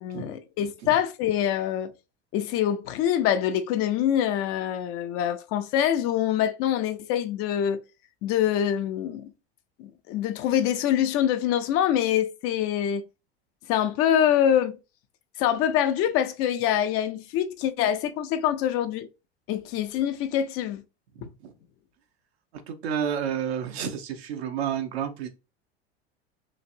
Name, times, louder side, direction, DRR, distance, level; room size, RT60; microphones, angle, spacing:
voice 1, 0.0-1.9 2.3-7.8 8.2-9.3 9.8-13.0 13.7-14.8 15.4-19.1 19.5-20.8 21.2-21.3, left 10 dB, 45° left, 0.5 m, -25 dB
voice 2, 21.1-21.5 22.5-25.3, right 8 dB, 75° right, 0.7 m, -31 dB
3.0 x 2.5 x 2.5 m
hypercardioid pair, 85°, 32 cm